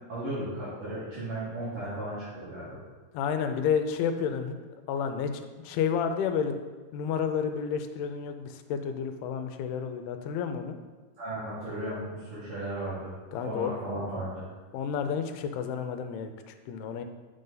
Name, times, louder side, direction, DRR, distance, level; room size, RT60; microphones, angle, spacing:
voice 1, 0.1-2.8 11.2-13.1 13.4-14.4, right 1 dB, 60° right, -12 dB, 3.5 m, -35 dB
voice 2, 3.1-4.6 4.9-6.5 6.9-10.8 13.3-13.7 14.7-17.0, left 7 dB, 85° left, 7 dB, 2.5 m, -30 dB
8.3 x 5.3 x 3.9 m, 1.3 s
omnidirectional pair, 4.5 m